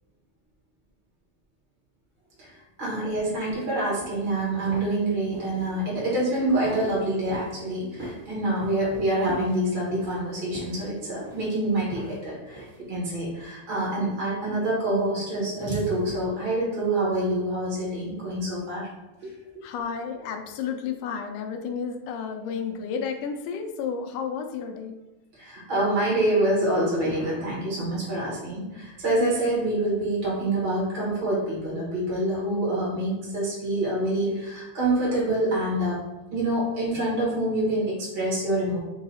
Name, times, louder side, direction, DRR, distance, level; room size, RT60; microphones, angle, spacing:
voice 1, 2.8-18.9 19.2-19.3 25.4-36.0 36.3-38.8, right 1 dB, 75° right, -6 dB, 0.4 m, -26 dB
sound 1, 3.7-12.9, right 1 dB, 30° right, 1.2 m, -43 dB
voice 2, 19.6-25.0, left 6 dB, 80° left, 5 dB, 1.5 m, -32 dB
4.9 x 2.3 x 4.0 m, 1.0 s
omnidirectional pair, 3.4 m